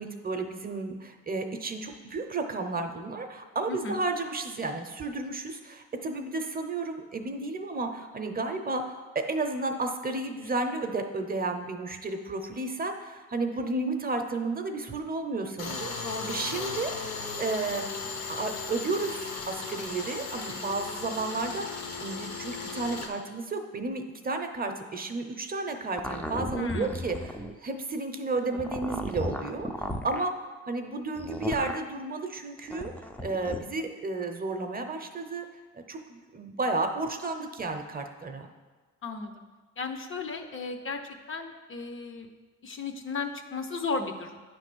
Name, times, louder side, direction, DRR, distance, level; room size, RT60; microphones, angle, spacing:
voice 1, 0.0-32.9 33.2-35.5 35.7-38.5, right 3 dB, 30° right, 6 dB, 0.7 m, -32 dB
Tools, 15.6-23.1, left 4 dB, 60° left, 1.1 m, -36 dB
voice 2, 16.0-16.4 26.6-26.9 39.0-39.4 39.8-41.0 41.3-42.3 42.6-44.4, left 4 dB, 45° left, 6 dB, 0.8 m, -34 dB
sound 1, 26.0-27.6 28.5-30.2 31.2-31.8 32.6-33.6, left 1 dB, 5° left, 0.5 m, -35 dB
9.3 x 3.3 x 6.1 m, 1.3 s
cardioid pair, 90°, 30 cm